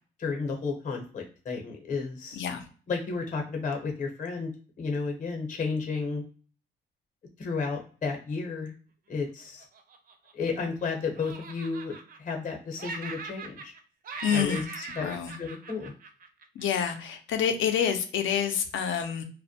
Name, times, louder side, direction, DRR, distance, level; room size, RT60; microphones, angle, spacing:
voice 1, 0.2-2.4 2.9-4.5 4.8-6.2 7.4-8.7 9.1-9.6 10.3-13.7 14.3-14.6 15.0-15.9, left 4 dB, 40° left, 2 dB, 0.8 m, -32 dB
voice 2, 2.3-2.6 14.2-15.3 16.6-19.2, left 8 dB, 75° left, 6 dB, 0.6 m, -28 dB
Laughter, 9.6-10.8 11.2-12.5 12.8-13.8 14.0-16.6, right 3 dB, 45° right, 0.5 m, -41 dB
2.2 x 2.1 x 2.7 m, 0.40 s
cardioid pair, 90°, 20 cm